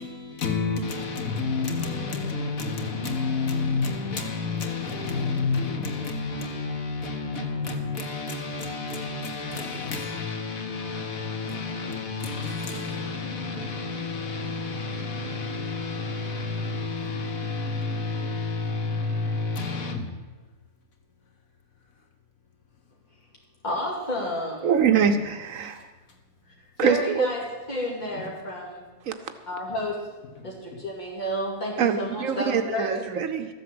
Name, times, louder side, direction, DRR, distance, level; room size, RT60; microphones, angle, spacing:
voice 1, 0.0-20.1 28.1-28.2 30.4-30.8, left 4 dB, 85° left, 1.9 m, -30 dB
voice 2, 23.6-24.7 26.8-28.9 29.5-30.0 30.4-33.0, left 1 dB, 35° left, 2.8 m, -31 dB
voice 3, 24.6-25.8 26.8-27.3 29.1-29.2 31.8-33.5, right 7 dB, 75° right, 1.2 m, -24 dB
13.5 x 7.6 x 7.7 m
omnidirectional pair, 1.4 m